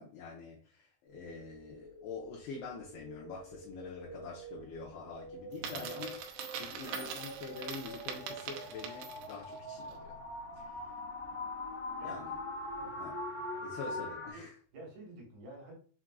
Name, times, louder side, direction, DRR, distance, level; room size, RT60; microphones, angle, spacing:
voice 1, 0.0-6.1 6.6-10.2 10.6-10.9 12.0-12.3 13.0-13.2 13.6-14.5, left 4 dB, 80° left, 2.5 m, -45 dB
sound 1, 1.1-14.3, left 1 dB, 50° left, 1.3 m, -44 dB
Coin (dropping), 5.5-9.4, right 7 dB, 85° right, 2.3 m, -42 dB
voice 2, 5.6-6.0 11.2-11.5 12.0-12.2 12.7-13.0 14.3-15.7, right 1 dB, 70° right, 3.1 m, -51 dB
sound 2, 6.7-13.7 14.0-14.2 15.0-15.1, right 1 dB, 40° right, 1.3 m, -59 dB
7.2 x 2.5 x 2.2 m
omnidirectional pair, 5.2 m